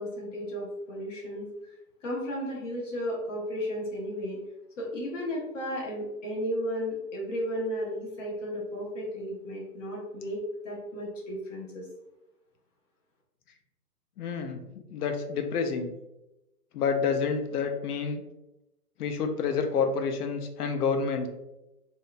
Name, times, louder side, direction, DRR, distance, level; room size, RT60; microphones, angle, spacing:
voice 1, 0.0-1.5 2.0-4.4 4.8-11.8, equal, 55° left, -3 dB, 1.1 m, -34 dB
voice 2, 14.2-14.6 14.9-15.9 16.7-18.2 19.0-21.3, left 5 dB, 70° left, 6 dB, 0.5 m, -28 dB
2.9 x 2.1 x 2.3 m, 0.94 s
hypercardioid pair, 155°, 47 cm